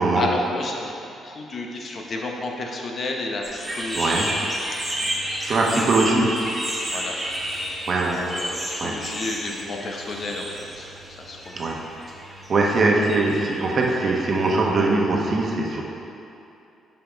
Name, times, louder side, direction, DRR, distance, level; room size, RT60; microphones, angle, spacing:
voice 1, 0.2-4.4 6.8-7.2 7.4-7.5 8.2-10.9 11.3-11.8, left 2 dB, 50° left, 0 dB, 0.9 m, -31 dB
sound 1, 3.4-14.9, right 1 dB, 15° right, 1.4 m, -32 dB
voice 2, 3.9-4.3 5.4-6.3 7.9-8.2 8.8-8.9 11.6-11.8 12.5-15.8, right 3 dB, 45° right, -1 dB, 1.1 m, -21 dB
6.0 x 5.1 x 5.1 m, 2.7 s
cardioid pair, 90°, 0 cm